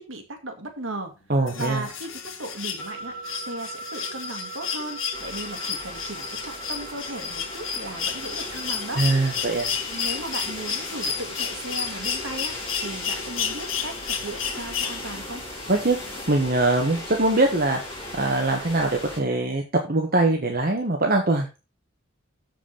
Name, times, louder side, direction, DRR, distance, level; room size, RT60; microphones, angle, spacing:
voice 1, 0.0-1.1 1.5-3.2 3.4-9.0 9.9-12.5 12.8-15.4, right 1 dB, 75° right, 6 dB, 1.9 m, -36 dB
voice 2, 1.3-1.8 9.0-9.7 15.7-16.0 16.3-17.8 18.2-19.6 19.9-21.5, right 2 dB, 45° right, 2 dB, 1.3 m, -22 dB
sound 1, 1.5-15.4 16.8-16.9, left 7 dB, 80° left, 1.5 m, -32 dB
sound 2, 2.8-14.7, right 3 dB, 5° left, 3.8 m, -43 dB
sound 3, 5.1-19.2, left 1 dB, 30° left, 4.9 m, -37 dB
7.4 x 6.1 x 5.5 m, 0.30 s
head